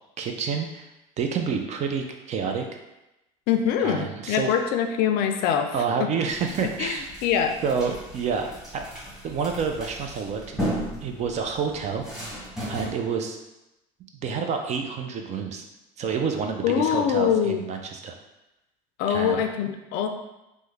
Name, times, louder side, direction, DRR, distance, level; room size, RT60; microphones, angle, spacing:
voice 1, 0.2-0.9 1.2-2.7 3.8-4.5 5.7-7.1 7.6-8.5 8.7-8.8 9.2-10.6 11.0-12.0 12.7-13.4 14.1-15.6 16.0-18.1 19.1-19.4, right 6 dB, 40° right, 4 dB, 0.5 m, -28 dB
voice 2, 3.5-5.7 6.0-6.1 6.8-7.6 16.6-17.6 19.0-20.1, left 8 dB, 65° left, 6 dB, 0.4 m, -24 dB
sound 1, 6.3-12.9, equal, 5° right, 1.3 m, -36 dB
3.4 x 2.1 x 3.2 m, 0.94 s
supercardioid pair, 100°, 18 cm